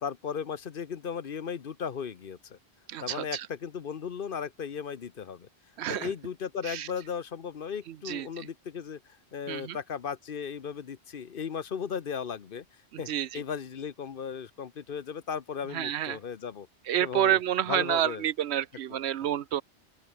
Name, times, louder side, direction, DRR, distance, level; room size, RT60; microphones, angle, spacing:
voice 1, 0.0-2.6 3.0-5.5 5.9-12.6 13.0-16.7 17.0-17.4 17.7-18.3 18.9-19.0, left 7 dB, 55° left, 1.0 m, -36 dB
voice 2, 2.9-3.5 5.8-6.1 6.7-6.9 7.9-8.5 9.5-9.8 13.1-13.4 15.7-16.2 16.9-19.6, right 11 dB, 75° right, 0.9 m, -29 dB
open air
omnidirectional pair, 1.1 m